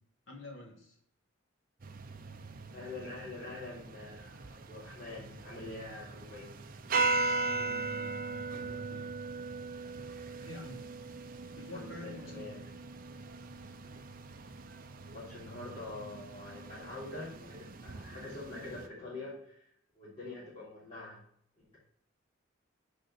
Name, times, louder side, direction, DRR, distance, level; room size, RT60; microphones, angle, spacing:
voice 1, 0.3-1.0 7.4-9.1 10.4-10.9 11.5-12.6, left 2 dB, 70° left, 0 dB, 2.3 m, -48 dB
sound 1, 1.8-18.9, right 3 dB, 45° right, 0.6 m, -39 dB
voice 2, 2.7-6.5 11.7-12.6 15.1-19.6 19.9-21.2, left 2 dB, 30° left, -12 dB, 3.4 m, -45 dB
6.8 x 5.0 x 6.7 m, 0.66 s
head